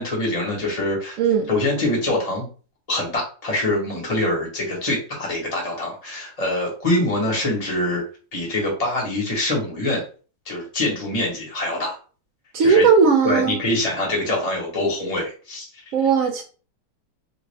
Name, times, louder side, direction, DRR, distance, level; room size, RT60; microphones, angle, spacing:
voice 1, 0.0-1.2 1.5-2.5 2.9-8.0 8.3-10.0 10.5-12.0 12.6-12.9 13.2-15.7, left 1 dB, 25° left, 1.2 m, -24 dB
voice 2, 1.2-1.5 12.5-13.6 15.9-16.4, right 5 dB, 75° right, 0.7 m, -17 dB
3.4 x 2.5 x 3.3 m
omnidirectional pair, 1.9 m